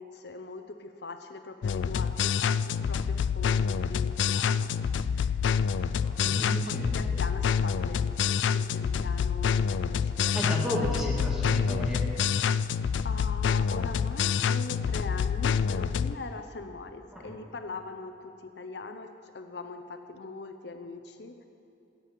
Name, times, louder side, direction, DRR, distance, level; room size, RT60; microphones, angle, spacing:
voice 1, 0.0-4.7 5.2-5.6 6.2-10.9 13.0-21.5, left 3 dB, 65° left, 7 dB, 0.7 m, -41 dB
sound 1, 1.6-16.1, left 7 dB, 85° left, 0.3 m, -27 dB
voice 2, 6.2-6.9 10.3-12.0 17.1-17.3, equal, 5° right, -3 dB, 2.1 m, -32 dB
15.5 x 8.4 x 7.4 m, 2.8 s
head